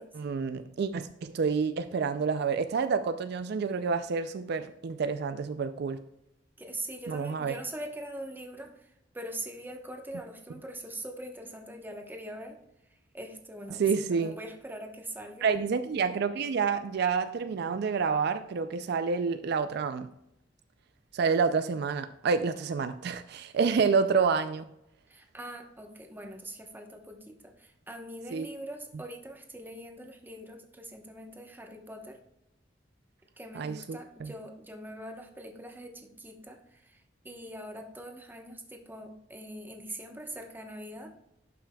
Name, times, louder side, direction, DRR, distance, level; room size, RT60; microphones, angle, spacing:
voice 1, 0.2-6.0 7.1-7.5 13.8-14.3 15.4-20.1 21.1-24.6 28.3-28.5 33.6-34.3, right 5 dB, 60° right, 10 dB, 0.4 m, -28 dB
voice 2, 6.6-12.6 12.9-15.5 25.1-32.2 33.4-41.1, right 1 dB, 10° right, 3 dB, 1.0 m, -43 dB
11.5 x 5.9 x 2.3 m, 0.81 s
head